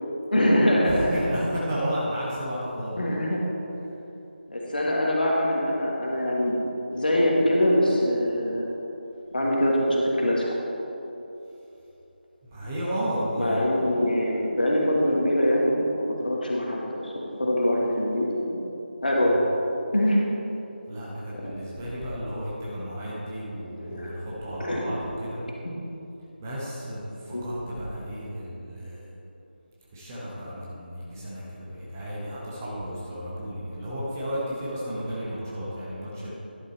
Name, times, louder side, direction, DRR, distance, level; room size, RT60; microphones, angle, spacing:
voice 1, 0.3-1.1 3.0-3.4 4.5-6.5 6.9-8.7 9.3-10.6 13.4-18.6 19.0-19.4 19.9-20.2 21.4-21.5 23.8-24.2 24.6-24.8 27.3-27.5, left 1 dB, 55° left, -3 dB, 1.8 m, -23 dB
voice 2, 0.8-3.0 12.5-13.8 19.2-19.3 20.9-25.4 26.4-29.1 29.9-36.3, equal, 15° right, -7 dB, 1.1 m, -33 dB
11.0 x 6.7 x 4.2 m, 3.0 s
figure-of-eight pair, 160°, 6 cm